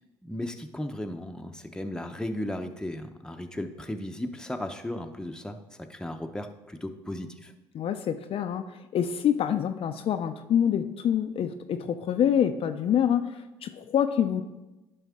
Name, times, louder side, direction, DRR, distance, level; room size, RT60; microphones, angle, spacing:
voice 1, 0.2-7.5, left 1 dB, 5° left, 5 dB, 0.8 m, -35 dB
voice 2, 7.7-14.4, left 9 dB, 55° left, 7 dB, 0.5 m, -26 dB
11.0 x 5.4 x 3.6 m, 1.0 s
supercardioid pair, 65°, 11 cm